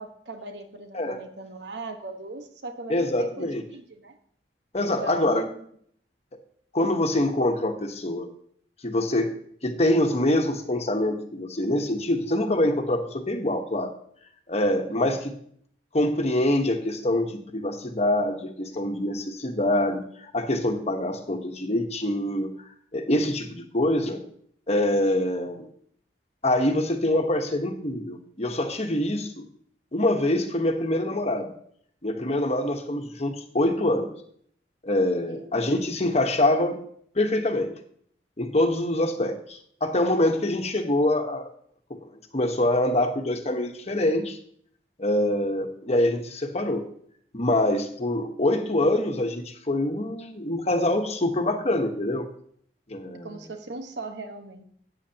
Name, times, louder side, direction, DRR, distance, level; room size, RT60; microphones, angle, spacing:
voice 1, 0.0-4.2 4.8-5.6 14.9-15.2 35.3-35.5 53.2-54.6, right 2 dB, 75° right, 6 dB, 1.3 m, -39 dB
voice 2, 2.9-3.6 4.7-5.4 6.7-8.3 8.8-9.3 9.6-13.9 14.5-15.3 15.9-22.5 22.9-24.2 24.7-25.6 26.4-29.4 29.9-31.5 32.0-34.1 34.8-36.8 37.1-37.7 38.4-41.5 42.3-44.4 45.0-46.8 47.3-52.3 52.9-53.3, left 1 dB, 40° left, 5 dB, 1.2 m, -25 dB
13.0 x 9.1 x 2.9 m, 0.62 s
head